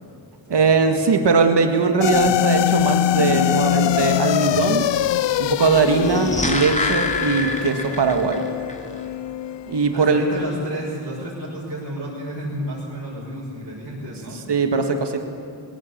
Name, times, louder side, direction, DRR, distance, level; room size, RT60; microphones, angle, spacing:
voice 1, 0.5-4.9 5.4-8.4 9.7-10.2 14.5-15.2, right 4 dB, 65° right, 6 dB, 1.9 m, -20 dB
sound 1, 2.0-10.5, left 11 dB, 75° left, 0.6 m, -23 dB
sound 2, 5.9-8.4 8.7-8.8, left 3 dB, 15° left, 2.5 m, -25 dB
voice 2, 9.9-14.4, right 1 dB, 50° right, -8 dB, 6.6 m, -31 dB
19.0 x 16.5 x 8.7 m, 2.6 s
cardioid pair, 60°, 44 cm